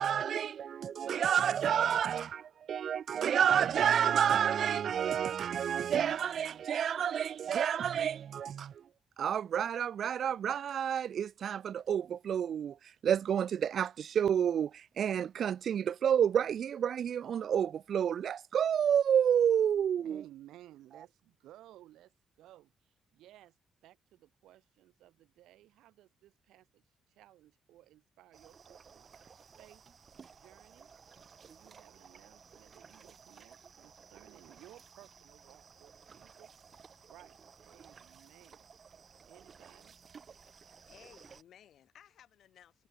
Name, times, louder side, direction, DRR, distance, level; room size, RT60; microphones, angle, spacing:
voice 1, 0.0-2.4 2.7-8.7 9.2-12.7 13.0-14.7 15.0-20.2, right 8 dB, 60° right, 0.4 m, -29 dB
voice 2, 20.0-23.6 23.8-29.1 29.6-29.8 30.3-30.9 31.4-36.5 37.1-38.7 39.2-40.0, right 14 dB, 85° right, 5.1 m, -58 dB
sound 1, 28.3-41.4, right 6 dB, 45° right, 3.1 m, -56 dB
voice 3, 40.9-42.9, left 10 dB, 70° left, 3.5 m, -59 dB
cardioid pair, 90°, 0 cm